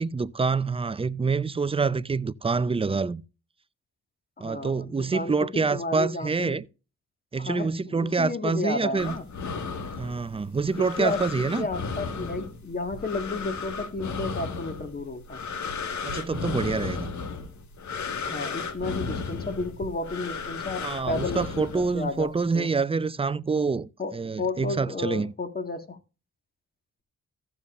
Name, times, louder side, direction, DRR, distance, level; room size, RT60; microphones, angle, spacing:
voice 1, 0.0-3.2 4.4-6.7 7.3-9.2 10.0-11.7 16.0-17.1 20.8-25.3, right 4 dB, 20° right, 0.5 m, -26 dB
voice 2, 4.4-6.6 7.4-9.2 10.7-15.4 18.2-22.7 24.0-26.0, left 3 dB, 30° left, 1.6 m, -32 dB
sound 1, 9.0-22.3, left 4 dB, 70° left, 1.7 m, -34 dB
15.0 x 7.1 x 2.5 m
cardioid pair, 85°, 30 cm